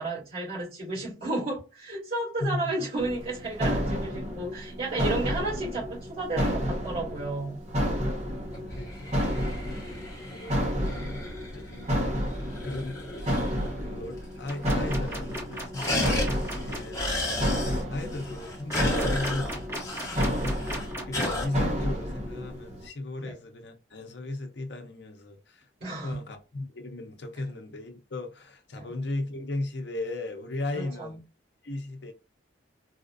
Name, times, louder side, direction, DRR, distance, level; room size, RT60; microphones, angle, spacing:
voice 1, 0.0-7.6 20.1-20.5 23.2-23.3 25.8-26.2 28.7-28.9 30.7-31.1, right 2 dB, 55° right, 2.1 m, -33 dB
sound 1, 3.0-22.9, equal, 35° right, 1.0 m, -31 dB
voice 2, 8.5-12.2 12.6-13.5 13.8-16.1 16.7-17.4 17.9-19.6 20.2-20.6 21.0-31.2 31.6-32.1, left 2 dB, 60° left, 0.7 m, -37 dB
sound 2, 8.5-13.8 14.2-14.3 14.5-15.0 15.3-21.4, left 1 dB, 15° left, 1.2 m, -34 dB
sound 3, 14.5-16.8 18.7-21.4, right 1 dB, 15° right, 1.2 m, -36 dB
4.1 x 2.5 x 2.5 m
head